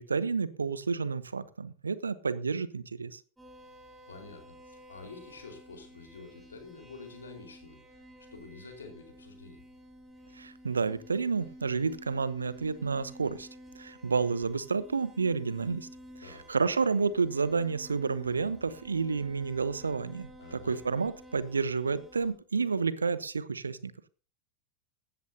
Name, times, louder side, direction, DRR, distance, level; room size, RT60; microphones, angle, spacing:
voice 1, 0.0-3.2 10.4-13.5 13.8-15.9 16.2-23.9, right 5 dB, 75° right, 0.9 m, -30 dB
sound 1, 3.4-22.3, equal, 5° right, 6.9 m, -52 dB
voice 2, 4.1-9.6 16.2-16.4 20.4-20.8, left 4 dB, 70° left, 4.4 m, -48 dB
17.0 x 13.0 x 2.8 m
figure-of-eight pair, 90°, 0 cm